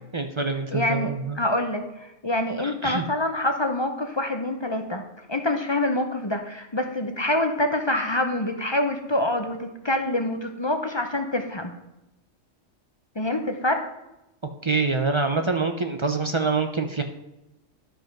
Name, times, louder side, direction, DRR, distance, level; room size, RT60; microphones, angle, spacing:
voice 1, 0.1-1.4 2.6-3.0 14.6-17.0, right 4 dB, 35° right, 6 dB, 0.5 m, -25 dB
voice 2, 0.7-5.0 5.3-11.7 13.2-13.9, left 1 dB, 25° left, 5 dB, 0.7 m, -26 dB
11.5 x 5.2 x 5.9 m, 0.93 s
omnidirectional pair, 1.3 m